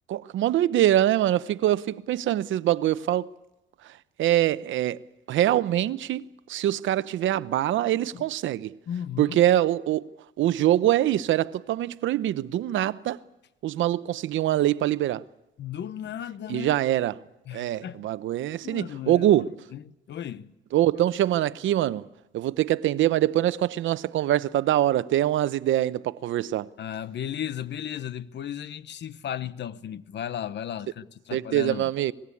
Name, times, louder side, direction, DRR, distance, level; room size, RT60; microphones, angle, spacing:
voice 1, 0.1-3.3 4.2-5.0 5.3-8.8 9.2-10.1 10.4-13.2 13.6-15.2 16.5-17.1 17.5-19.5 20.7-22.1 22.3-26.7 31.3-32.1, right 13 dB, 80° right, 0.8 m, -24 dB
voice 2, 8.9-9.4 15.6-16.8 17.5-18.0 18.6-19.3 19.7-20.5 26.8-31.9, left 10 dB, 65° left, 1.1 m, -35 dB
26.5 x 19.5 x 8.5 m
cardioid pair, 90°, 20 cm